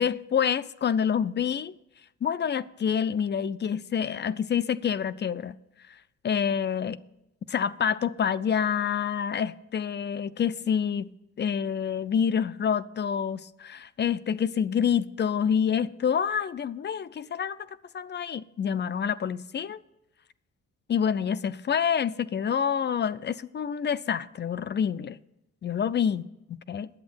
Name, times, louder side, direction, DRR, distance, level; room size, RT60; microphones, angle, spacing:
voice 1, 0.0-1.8 2.2-5.6 5.9-6.0 6.2-7.0 7.5-17.7 17.9-19.8 20.9-25.2 25.6-26.9, left 7 dB, 35° left, 0.5 m, -27 dB
9.6 x 7.9 x 6.2 m
cardioid pair, 90°, 30 cm